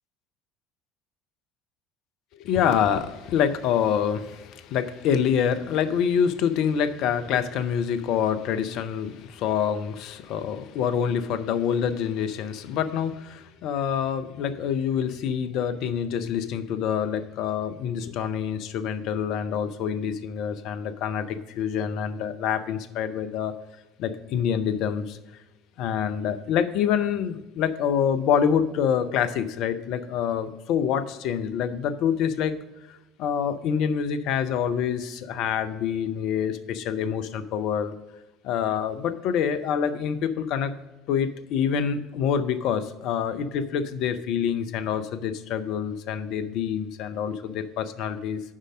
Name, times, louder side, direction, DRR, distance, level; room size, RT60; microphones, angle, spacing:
voice 1, 2.3-23.5 24.0-25.2 25.8-32.5 32.9-38.0 38.4-40.7 41.1-48.4, left 8 dB, 55° left, 10 dB, 0.6 m, -26 dB
7.4 x 5.3 x 6.2 m, 1.1 s
figure-of-eight pair, 60°, 0 cm